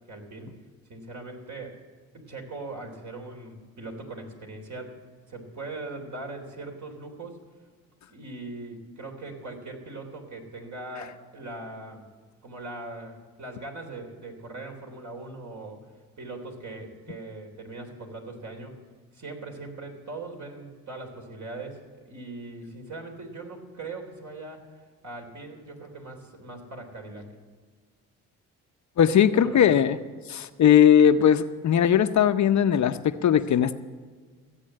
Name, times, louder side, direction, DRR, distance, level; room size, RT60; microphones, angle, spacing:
voice 1, 0.1-0.5 0.9-1.8 2.1-5.0 5.3-7.4 8.1-12.0 12.4-15.8 16.2-18.8 19.1-27.3 29.3-29.8, right 2 dB, 50° right, 2 dB, 3.6 m, -40 dB
voice 2, 29.0-30.0 30.3-33.7, left 9 dB, 50° left, 10 dB, 0.7 m, -19 dB
15.0 x 8.3 x 7.5 m, 1.5 s
supercardioid pair, 65°, 37 cm